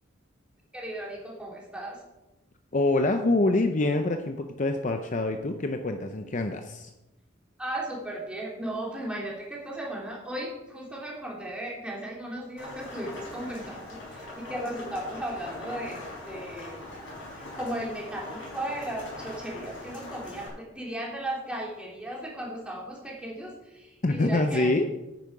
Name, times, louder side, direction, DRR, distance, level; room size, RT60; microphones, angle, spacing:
voice 1, 0.7-2.0 7.6-16.8 17.3-24.7, right 1 dB, 5° right, -4 dB, 3.0 m, -36 dB
voice 2, 2.7-6.9 24.0-24.9, left 2 dB, 40° left, 6 dB, 0.6 m, -25 dB
Rain, 12.6-20.5, left 2 dB, 65° left, 4.8 m, -42 dB
10.0 x 9.2 x 4.8 m, 0.98 s
head